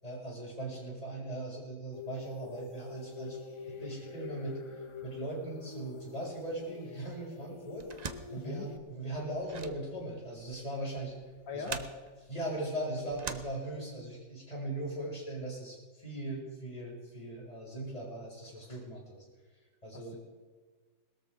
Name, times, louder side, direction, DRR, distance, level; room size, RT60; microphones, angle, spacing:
voice 1, 0.0-3.4 3.7-7.9 8.3-11.2 11.5-11.8 12.2-19.2 19.8-20.2, right 1 dB, 20° left, -4 dB, 6.4 m, -39 dB
sound 1, 1.9-8.8, left 5 dB, 40° left, 0.4 m, -46 dB
sound 2, 7.8-14.1, right 4 dB, 40° right, 0.5 m, -45 dB
voice 2, 8.4-8.7 11.5-11.8 19.9-20.2, left 5 dB, 85° left, 5 dB, 1.9 m, -41 dB
21.5 x 13.5 x 3.7 m, 1.4 s
omnidirectional pair, 1.9 m